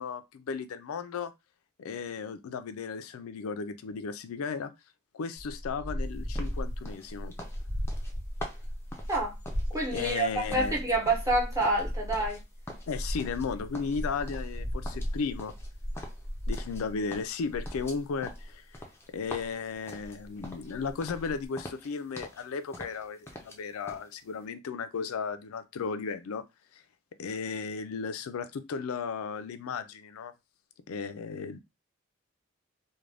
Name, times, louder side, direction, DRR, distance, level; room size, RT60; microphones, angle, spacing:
voice 1, 0.0-1.3 1.8-4.7 5.1-7.3 9.9-10.8 12.9-15.5 16.5-18.6 19.1-26.4 26.7-26.8 27.2-30.3 30.9-31.6, left 5 dB, 90° left, 0.4 m, -35 dB
sound 1, 5.4-18.8 19.3-19.5 19.7-21.5, equal, 60° right, 1.1 m, -36 dB
sound 2, 6.3-10.2 10.5-12.4 12.7-13.5 13.7-14.6 14.8-16.8 17.1-20.7 21.0-21.3 21.5-22.4 22.7-23.6 23.9-24.1, left 1 dB, 10° left, 0.4 m, -45 dB
voice 2, 9.7-12.4, right 2 dB, 15° right, 0.8 m, -28 dB
2.4 x 2.2 x 3.3 m
head